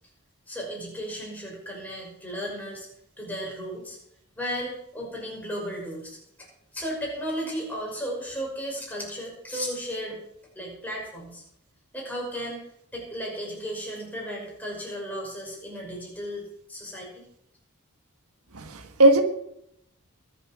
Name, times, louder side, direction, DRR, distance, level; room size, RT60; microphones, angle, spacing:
voice 1, 0.5-2.9 3.2-4.0 4.4-6.2 6.7-10.2 10.6-11.4 11.9-12.7 12.9-17.3, equal, 5° left, -3 dB, 5.7 m, -34 dB
voice 2, 18.5-19.2, right 1 dB, 85° right, 6 dB, 1.5 m, -18 dB
22.0 x 7.5 x 6.0 m, 0.75 s
head